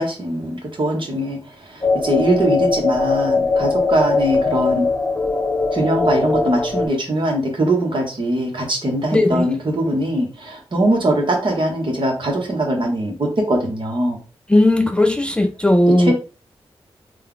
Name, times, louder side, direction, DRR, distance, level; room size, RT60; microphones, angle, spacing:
voice 1, 0.0-1.4 1.7-4.9 5.7-14.2 16.0-16.1, right 1 dB, 55° right, 1.3 m, -21 dB
sound 1, 1.8-6.9, left 3 dB, 25° left, 1.0 m, -20 dB
voice 2, 9.1-9.5 14.5-16.1, left 1 dB, 10° left, 0.4 m, -16 dB
3.3 x 2.3 x 3.7 m
cardioid pair, 70°, 10 cm